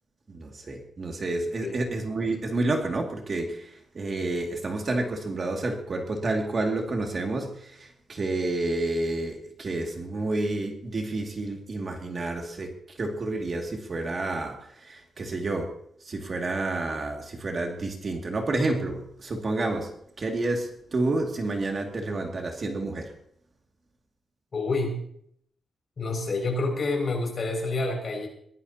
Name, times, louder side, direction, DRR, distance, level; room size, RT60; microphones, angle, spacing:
voice 1, 0.3-19.9 20.2-23.1, right 2 dB, 35° right, 1 dB, 2.3 m, -30 dB
voice 2, 24.5-25.0 26.0-28.3, left 2 dB, 40° left, 1 dB, 6.2 m, -28 dB
22.5 x 18.5 x 2.9 m, 0.67 s
wide cardioid pair, 165°, 0 cm